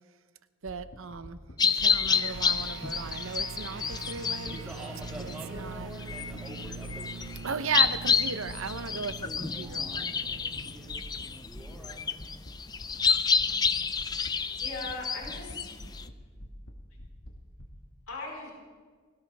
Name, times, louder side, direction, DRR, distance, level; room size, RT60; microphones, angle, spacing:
voice 1, 0.6-4.6 5.2-5.9 7.4-10.1, right 5 dB, 75° right, 12 dB, 0.8 m, -36 dB
sound 1, 0.7-4.8 5.0-8.2 8.4-8.8 9.1-9.4 9.7-10.0 10.3-10.6 10.9-11.2 11.5-11.9 12.2-12.5 12.8-13.1 13.4-13.7 14.0-14.3 14.6-15.6 15.8-16.1 16.4-16.7 17.0-17.7, equal, 65° left, 1.9 m, -45 dB
sound 2, 1.6-16.1, left 5 dB, 20° left, 0.4 m, -29 dB
sound 3, 2.1-11.8, right 5 dB, 55° right, 0.4 m, -44 dB
voice 2, 4.4-7.1 9.6-11.0 11.4-12.1, right 1 dB, 5° right, -6 dB, 5.0 m, -46 dB
voice 3, 14.1-15.7 18.1-18.5, left 2 dB, 85° left, -3 dB, 4.6 m, -40 dB
21.0 x 17.5 x 3.5 m, 1.5 s
head